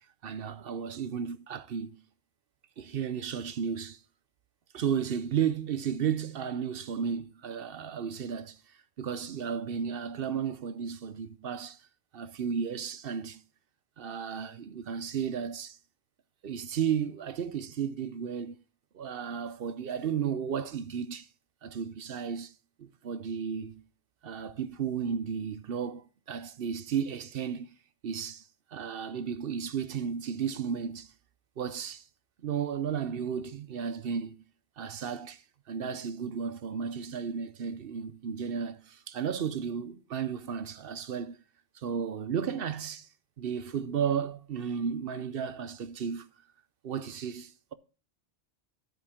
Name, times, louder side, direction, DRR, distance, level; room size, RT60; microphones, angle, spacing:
voice 1, 0.2-1.9 2.8-4.0 4.7-8.6 9.0-11.8 12.1-13.4 14.0-15.8 16.4-18.5 18.9-21.3 21.6-22.5 22.8-23.7 24.2-27.7 28.0-28.4 28.7-31.1 31.6-32.0 32.4-34.3 34.8-35.4 35.7-41.4 41.8-43.1 43.4-46.3 46.8-47.7, right 7 dB, 60° right, 0.9 m, -33 dB
10.5 x 8.6 x 3.6 m
omnidirectional pair, 1.1 m